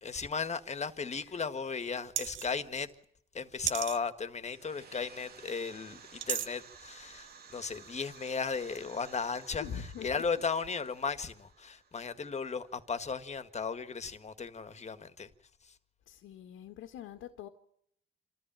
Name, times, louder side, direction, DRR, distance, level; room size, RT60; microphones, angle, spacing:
voice 1, 0.0-2.9 3.3-15.3 15.6-15.7, left 5 dB, 35° left, 1.7 m, -36 dB
sound 1, 2.2-2.5 3.7-4.0 6.2-6.5, right 11 dB, 75° right, 1.1 m, -33 dB
sound 2, 4.4-12.9, right 6 dB, 50° right, 2.1 m, -55 dB
voice 2, 9.6-10.1 16.1-17.5, left 8 dB, 90° left, 1.7 m, -43 dB
27.5 x 13.5 x 9.0 m
cardioid pair, 90°, 20 cm